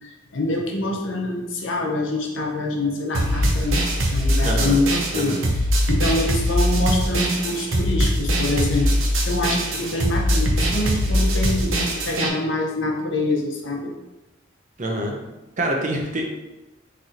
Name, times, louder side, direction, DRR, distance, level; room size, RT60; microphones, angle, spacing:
voice 1, 0.0-5.4 5.9-8.9 9.3-13.9, left 2 dB, 70° left, 0 dB, 0.8 m, -25 dB
sound 1, 3.1-12.3, equal, 80° right, 0.8 m, -22 dB
voice 2, 4.4-4.8 5.1-5.4 14.8-15.3 15.6-16.3, right 1 dB, 40° right, 1 dB, 0.7 m, -25 dB
4.2 x 3.3 x 3.8 m, 1.0 s
head